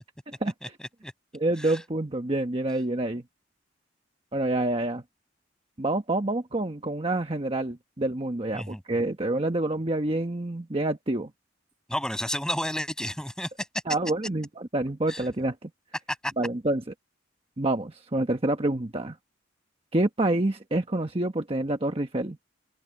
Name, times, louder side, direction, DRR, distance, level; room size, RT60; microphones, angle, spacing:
voice 1, 0.6-1.1 1.6-1.8 8.5-8.8 11.9-13.5 15.1-15.2 16.1-16.3, left 1 dB, 5° left, 7.1 m, -32 dB
voice 2, 1.3-3.2 4.3-5.0 5.8-11.3 13.9-15.7 16.4-16.8 17.6-19.2 19.9-22.4, right 2 dB, 30° right, 1.2 m, -27 dB
open air
head